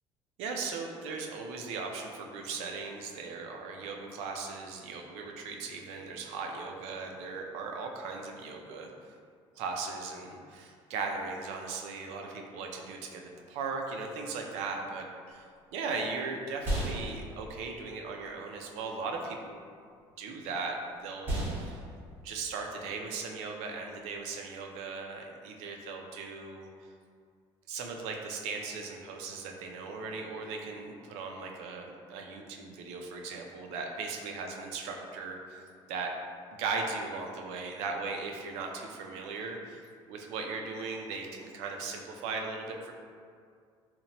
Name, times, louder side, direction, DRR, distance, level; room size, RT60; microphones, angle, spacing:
voice 1, 0.4-8.9 9.6-15.4 15.7-19.4 20.2-20.7 21.0-21.8 22.2-26.7 27.7-35.6 35.9-36.1 36.6-39.8 40.1-42.9, right 4 dB, 90° right, 2 dB, 0.4 m, -38 dB
sound 1, 15.3-24.9, right 1 dB, 20° right, 0.6 m, -39 dB
2.8 x 2.1 x 2.7 m, 2.2 s
cardioid pair, 165°, 11 cm